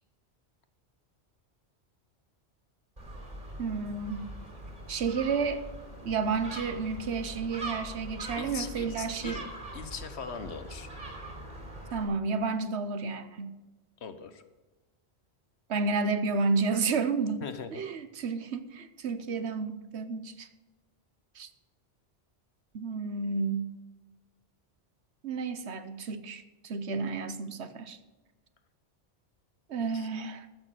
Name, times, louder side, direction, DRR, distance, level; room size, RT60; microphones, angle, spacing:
Gull seagull, 3.0-12.0, right 2 dB, 40° right, 3.5 m, -42 dB
voice 1, 3.6-4.3 4.9-5.6 6.0-9.4 11.9-13.5 15.7-17.4 17.7-20.5 21.3-21.5 22.7-23.7 25.2-28.0 29.7-30.5, right 4 dB, 75° right, 11 dB, 1.2 m, -31 dB
voice 2, 8.4-10.9 14.0-14.4 17.4-17.8 29.7-30.1, left 6 dB, 75° left, 10 dB, 1.3 m, -41 dB
13.5 x 6.6 x 7.6 m, 1.2 s
omnidirectional pair, 1.1 m